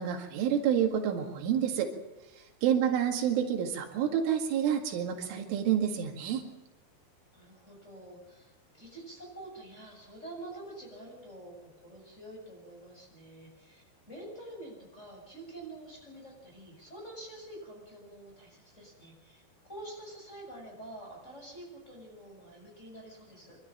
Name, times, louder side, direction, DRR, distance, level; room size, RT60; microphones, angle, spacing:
voice 1, 0.0-1.9 2.6-6.4, right 9 dB, 90° right, 4 dB, 4.6 m, -28 dB
voice 2, 7.3-23.6, right 1 dB, 15° left, -1 dB, 7.0 m, -47 dB
25.5 x 12.5 x 8.9 m, 1.0 s
omnidirectional pair, 5.5 m